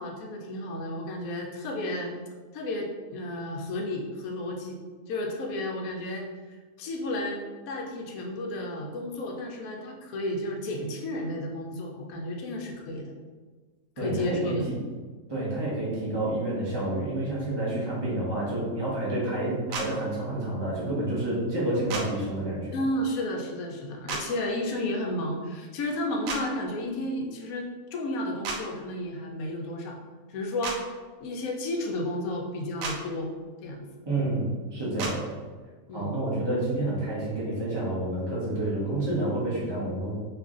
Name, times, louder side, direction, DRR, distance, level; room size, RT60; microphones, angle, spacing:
voice 1, 0.0-2.1 2.5-4.8 5.1-6.3 6.8-13.1 14.0-14.7 22.7-30.0 30.3-30.8 31.2-33.4 33.6-33.8 35.9-36.2, left 1 dB, 80° left, 1 dB, 1.1 m, -32 dB
voice 2, 14.0-14.6 15.3-22.8 34.0-35.3 35.9-40.1, right 1 dB, 20° right, -7 dB, 0.8 m, -29 dB
sound 1, 19.7-19.9 21.9-22.0 24.1-24.2 26.3-26.4 28.4-28.6 30.6-30.8 32.8-33.0 35.0-35.1, right 4 dB, 75° right, 0.9 m, -31 dB
3.0 x 2.5 x 3.6 m, 1.4 s
omnidirectional pair, 1.5 m